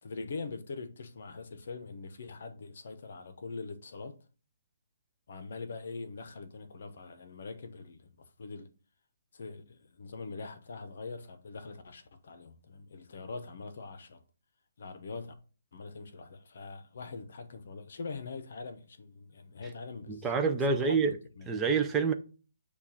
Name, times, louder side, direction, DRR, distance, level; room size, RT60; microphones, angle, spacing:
voice 1, 0.0-4.2 5.3-8.7 9.3-14.2 14.8-15.3 15.7-20.3 20.7-21.5, left 4 dB, 50° left, 0.8 m, -43 dB
voice 2, 20.1-21.1 21.5-22.1, right 5 dB, 10° right, 0.4 m, -27 dB
7.1 x 2.4 x 5.6 m
hypercardioid pair, 175°, 0 cm